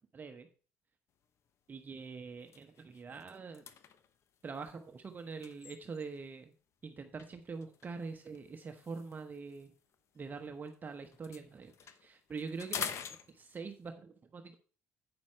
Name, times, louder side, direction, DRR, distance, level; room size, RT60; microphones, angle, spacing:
voice 1, 0.1-0.5 1.7-3.6 4.4-6.5 6.8-9.7 10.1-12.9 13.3-14.6, right 4 dB, 35° right, 6 dB, 0.9 m, -44 dB
sound 1, 1.2-1.5 1.9-2.0 2.4-6.3 7.2-10.8 11.0-13.9, left 8 dB, 60° left, 0.9 m, -47 dB
8.7 x 6.2 x 4.4 m, 0.39 s
supercardioid pair, 80°, 5 cm